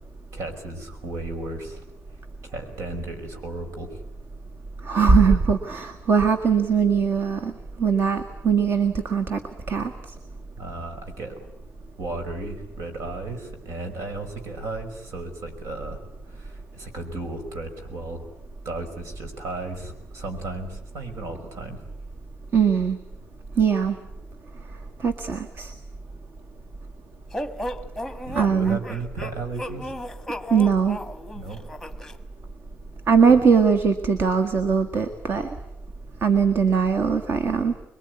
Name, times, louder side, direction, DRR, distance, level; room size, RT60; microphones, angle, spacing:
voice 1, 0.3-1.8 2.4-4.0 10.6-11.4 12.0-16.0 16.3-18.3 18.6-21.8 28.3-29.9 31.3-31.6 33.3-33.4, right 2 dB, 75° right, 6 dB, 5.5 m, -35 dB
voice 2, 4.8-7.5 7.8-9.4 9.7-9.9 22.5-23.0 23.6-24.0 25.0-25.7 28.3-28.8 30.5-31.0 33.1-35.5 36.2-37.7, right 6 dB, 50° right, 7 dB, 1.6 m, -20 dB
sound 1, 27.3-32.2, equal, ahead, 1.3 m, -34 dB
26.5 x 22.0 x 9.6 m, 0.84 s
cardioid pair, 170°, 5 cm